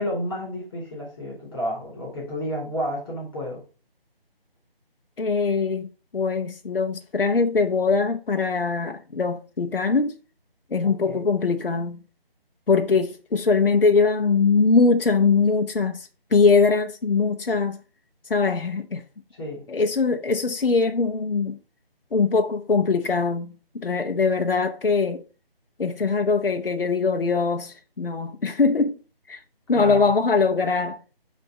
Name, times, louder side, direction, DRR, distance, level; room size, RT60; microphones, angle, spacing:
voice 1, 0.0-3.6 10.8-11.2 19.3-19.7 29.7-30.1, equal, 25° left, 3.9 m, -31 dB
voice 2, 5.2-5.9 6.1-10.1 10.7-12.0 12.7-17.8 18.3-19.0 19.7-21.6 22.1-25.2 25.8-29.0 29.3-29.4 29.7-31.0, left 4 dB, 65° left, 0.8 m, -22 dB
9.7 x 3.5 x 4.0 m
figure-of-eight pair, 155°, 30 cm